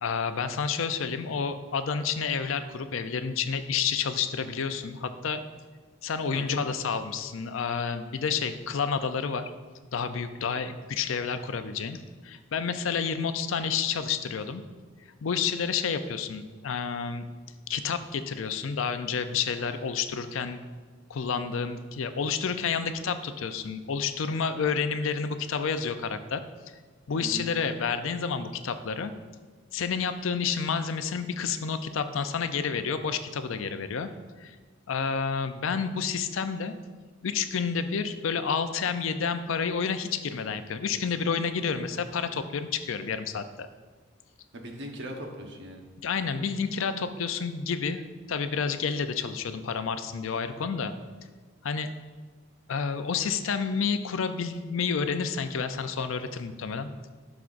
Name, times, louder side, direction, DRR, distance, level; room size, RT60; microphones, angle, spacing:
voice 1, 0.0-5.4 6.0-9.5 9.9-14.6 15.2-17.3 17.7-20.6 21.1-26.4 27.1-29.1 29.7-34.1 34.4-34.6 34.9-36.7 37.2-43.7 46.0-48.0 48.3-50.9 51.6-51.9 52.7-56.9, left 6 dB, 65° left, 10 dB, 0.5 m, -30 dB
voice 2, 6.3-6.7 10.4-10.6 27.2-27.5 44.5-45.8 50.6-50.7, right 1 dB, 55° right, 2 dB, 1.0 m, -39 dB
11.5 x 6.0 x 2.5 m, 1.4 s
head